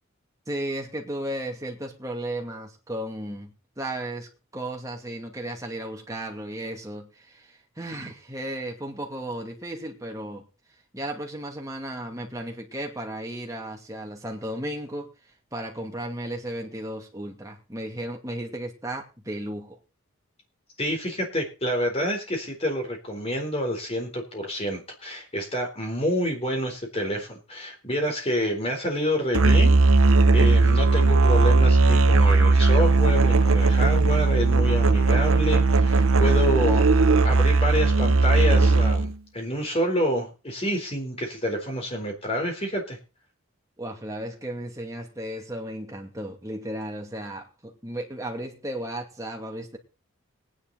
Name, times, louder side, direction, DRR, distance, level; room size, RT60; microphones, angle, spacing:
voice 1, 0.5-10.4 10.9-15.1 15.5-19.8 43.8-49.8, right 1 dB, 15° right, 2.5 m, -34 dB
voice 2, 20.8-43.0, equal, 30° left, 4.0 m, -28 dB
Musical instrument, 29.3-39.1, right 3 dB, 75° right, 0.9 m, -18 dB
19.5 x 10.0 x 4.1 m
head